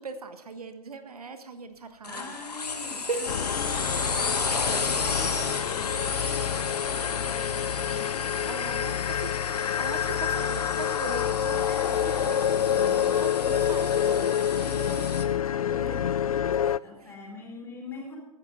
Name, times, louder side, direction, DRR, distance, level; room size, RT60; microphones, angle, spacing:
voice 1, 0.0-2.3 3.1-3.2 8.5-9.3 9.8-12.4 12.8-14.1 14.6-16.1 16.6-16.8, right 4 dB, 70° right, 9 dB, 1.3 m, -39 dB
sound 1, 2.0-15.2, left 4 dB, 80° left, 1.6 m, -33 dB
voice 2, 2.1-8.7 11.6-15.0 16.0-16.5 16.8-18.2, left 4 dB, 10° left, -1 dB, 4.4 m, -44 dB
sound 2, 3.3-16.8, left 9 dB, 60° left, 0.4 m, -27 dB
16.0 x 12.0 x 4.0 m, 1.0 s
figure-of-eight pair, 115°, 20 cm